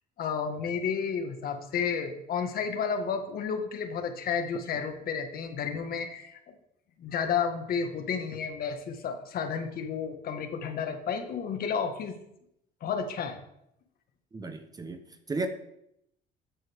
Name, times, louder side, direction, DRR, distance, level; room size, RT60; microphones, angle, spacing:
voice 1, 0.2-6.4 7.0-12.2 12.8-13.4, left 6 dB, 60° left, 6 dB, 1.6 m, -31 dB
voice 2, 14.3-15.0 15.3-15.5, right 3 dB, 20° right, 7 dB, 1.0 m, -33 dB
13.5 x 7.7 x 3.6 m, 0.78 s
cardioid pair, 110°, 17 cm